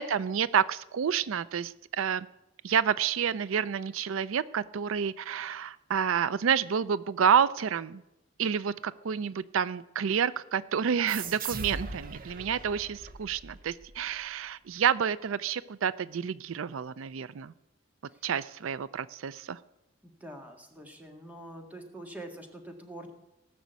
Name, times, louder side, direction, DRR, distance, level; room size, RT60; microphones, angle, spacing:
voice 1, 0.0-2.3 2.6-8.0 8.4-17.5 18.2-19.6, right 7 dB, 85° right, 18 dB, 0.4 m, -29 dB
sound 1, 11.1-14.3, right 4 dB, 45° right, 0.9 m, -40 dB
voice 2, 20.0-23.1, right 1 dB, 10° right, 3 dB, 1.9 m, -45 dB
18.0 x 6.3 x 8.2 m, 0.89 s
head